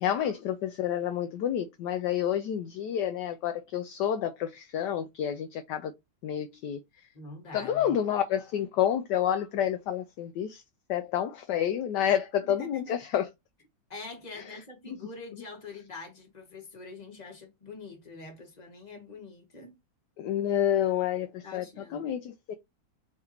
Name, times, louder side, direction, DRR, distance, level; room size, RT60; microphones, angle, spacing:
voice 1, 0.0-5.9 6.2-6.8 7.5-10.6 10.9-13.3 14.4-14.6 14.9-15.0 20.2-22.5, left 10 dB, 70° left, 1.1 m, -29 dB
voice 2, 7.1-7.9 12.5-13.0 13.9-19.8 21.4-22.1, left 3 dB, 20° left, 1.6 m, -44 dB
4.8 x 3.5 x 2.8 m
omnidirectional pair, 2.1 m